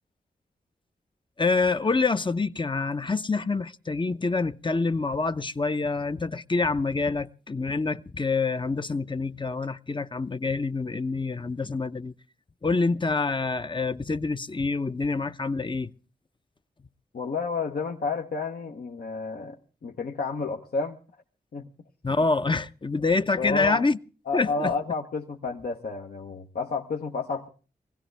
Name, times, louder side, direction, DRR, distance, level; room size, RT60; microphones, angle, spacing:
voice 1, 1.4-12.1 12.6-15.9 22.0-24.0 24.3-24.7, left 3 dB, 30° left, 0.8 m, -26 dB
voice 2, 17.1-19.6 19.8-21.0 21.5-21.7 23.4-23.8 24.3-27.5, left 4 dB, 65° left, 1.2 m, -30 dB
22.0 x 16.5 x 3.4 m
cardioid pair, 45°, 17 cm